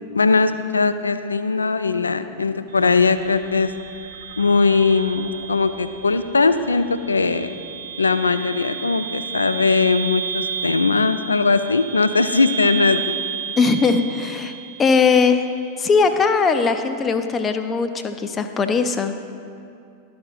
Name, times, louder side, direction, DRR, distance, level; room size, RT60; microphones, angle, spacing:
voice 1, 0.1-3.7 4.4-7.5 8.0-13.2, left 4 dB, 75° left, 11 dB, 0.3 m, -19 dB
sound 1, 2.7-15.7, right 7 dB, 65° right, 0.9 m, -32 dB
voice 2, 13.6-14.5 14.8-15.4 15.8-19.1, left 5 dB, 20° left, 8 dB, 0.5 m, -19 dB
12.5 x 4.3 x 4.0 m, 2.5 s
figure-of-eight pair, 90°, 0 cm